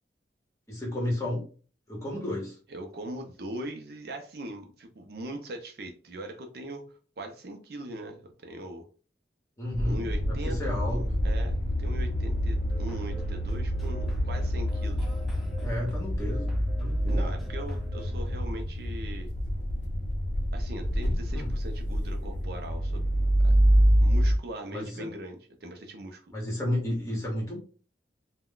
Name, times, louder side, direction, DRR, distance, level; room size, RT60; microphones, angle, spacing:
voice 1, 0.7-1.4 1.9-2.6 9.6-10.0 10.4-11.0 15.6-16.5 16.8-17.3 21.3-21.5 24.7-25.1 26.3-27.6, left 1 dB, 15° left, -2 dB, 1.0 m, -32 dB
voice 2, 2.7-6.9 7.2-8.8 9.8-15.1 17.1-19.3 20.0-20.1 20.5-23.1 23.4-23.6 24.0-26.3, right 1 dB, 55° right, 4 dB, 0.4 m, -40 dB
sound 1, 9.7-24.3, equal, 40° left, 0.5 m, -27 dB
sound 2, 12.7-18.2, left 1 dB, ahead, 0.6 m, -44 dB
2.3 x 2.1 x 3.7 m, 0.39 s
head